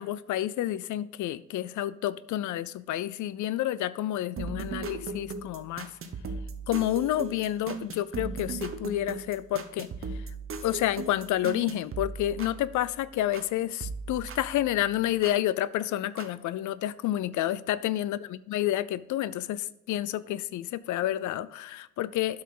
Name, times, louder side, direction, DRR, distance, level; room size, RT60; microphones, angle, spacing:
voice 1, 0.0-5.9 6.7-9.9 10.6-22.4, left 13 dB, 75° left, 17 dB, 0.5 m, -29 dB
sound 1, 4.4-13.5 13.8-15.4 16.2-16.3, right 4 dB, 45° right, 1.0 m, -38 dB
8.3 x 6.3 x 3.8 m, 0.92 s
cardioid pair, 90°, 30 cm